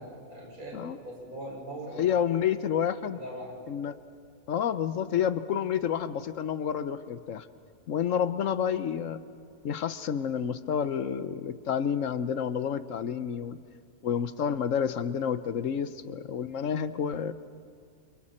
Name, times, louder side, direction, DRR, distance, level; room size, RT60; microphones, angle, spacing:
voice 1, 0.0-2.0 3.1-3.6, right 1 dB, 75° right, -3 dB, 6.6 m, -41 dB
voice 2, 2.0-3.2 3.7-4.0 4.5-7.5 7.9-9.2 9.6-13.6 14.0-17.3, left 8 dB, 65° left, 13 dB, 1.1 m, -29 dB
29.0 x 27.5 x 4.3 m, 2.2 s
omnidirectional pair, 1.5 m